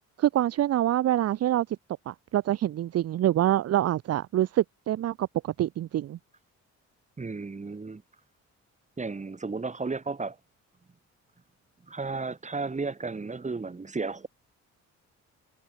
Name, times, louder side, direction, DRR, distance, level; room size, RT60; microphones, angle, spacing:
voice 1, 0.2-1.8 2.1-6.2, right 12 dB, 55° right, 0.6 m, -26 dB
voice 2, 7.2-8.0 9.0-10.4 11.9-14.3, right 4 dB, 25° right, 2.9 m, -33 dB
cardioid pair, 90°, 30 cm